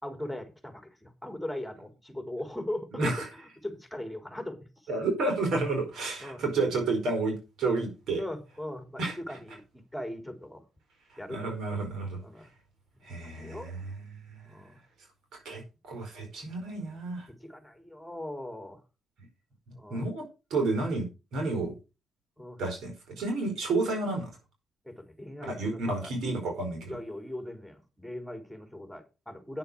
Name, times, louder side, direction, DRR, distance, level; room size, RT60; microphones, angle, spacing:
voice 1, 0.0-3.1 3.6-4.7 6.2-6.4 8.2-9.6 9.9-10.6 11.2-11.6 12.2-12.5 13.2-13.8 14.4-14.8 17.3-18.8 19.8-20.1 22.4-22.6 24.8-26.1 26.9-29.6, left 1 dB, ahead, 3.4 m, -39 dB
voice 2, 4.9-8.2 9.0-9.2 11.3-12.2 13.0-13.9 14.3-14.5 15.3-17.3 19.7-20.2 20.5-21.1 21.3-21.7 22.6-24.3 25.4-27.0, right 3 dB, 80° right, 4.8 m, -31 dB
9.5 x 6.9 x 6.3 m
cardioid pair, 85°, 0 cm